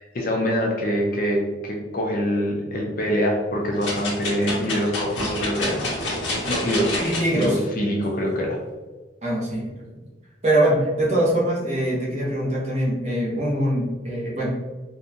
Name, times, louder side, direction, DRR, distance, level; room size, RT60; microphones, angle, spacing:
voice 1, 0.0-6.2 6.5-7.0 7.3-8.6, equal, 45° left, -1 dB, 0.6 m, -25 dB
sound 1, 3.8-7.5 8.0-8.1, left 2 dB, 90° left, 1.1 m, -28 dB
voice 2, 7.0-7.6 9.2-9.7 10.4-14.5, right 1 dB, 35° right, -6 dB, 1.0 m, -23 dB
3.8 x 2.3 x 2.8 m, 1.2 s
head